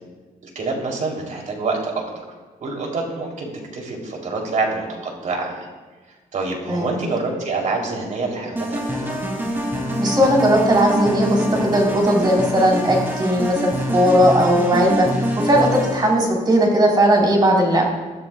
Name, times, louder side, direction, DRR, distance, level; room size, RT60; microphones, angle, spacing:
voice 1, 0.6-2.2 2.6-5.7 6.3-9.2, right 3 dB, 60° right, 0 dB, 3.6 m, -26 dB
sound 1, 8.5-16.2, equal, 15° right, 2.8 m, -25 dB
voice 2, 10.0-15.1 15.4-17.8, equal, 30° right, -2 dB, 4.4 m, -17 dB
21.5 x 13.5 x 2.4 m, 1.3 s
wide cardioid pair, 140°, 15 cm